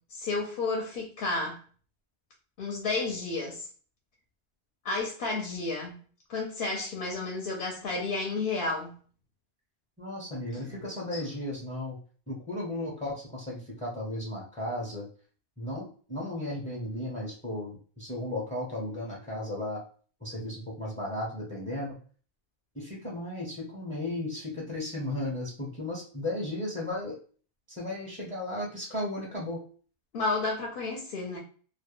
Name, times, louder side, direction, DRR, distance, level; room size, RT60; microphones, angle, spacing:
voice 1, 0.1-1.6 2.6-3.7 4.8-5.9 6.3-8.9 10.5-11.2 30.1-31.4, left 3 dB, 60° left, 0 dB, 0.7 m, -32 dB
voice 2, 10.0-12.0 12.3-15.1 15.6-19.8 20.2-22.0 22.7-27.2 27.7-29.6, left 1 dB, 10° left, -3 dB, 0.5 m, -35 dB
2.3 x 2.1 x 2.9 m, 0.42 s
omnidirectional pair, 1.1 m